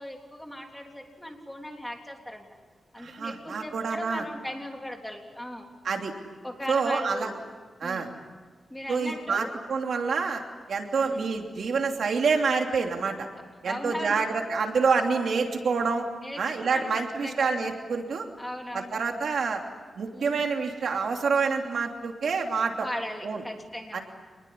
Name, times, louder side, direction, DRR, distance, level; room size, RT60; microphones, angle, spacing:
voice 1, 0.0-2.5 2.9-5.7 6.4-7.3 7.8-8.1 8.7-9.5 11.0-11.3 13.6-14.3 16.2-17.5 18.4-19.0 20.1-20.5 22.8-24.0, left 1 dB, 5° left, 2 dB, 3.4 m, -38 dB
voice 2, 3.0-4.2 5.8-6.1 6.7-7.3 7.8-8.1 8.9-10.4 10.7-13.3 13.6-16.0 16.4-18.3 18.7-19.6 20.0-22.9 23.2-23.4 23.9-24.0, right 5 dB, 70° right, 3 dB, 2.9 m, -27 dB
27.0 x 20.5 x 10.0 m, 1.4 s
wide cardioid pair, 140°, 0 cm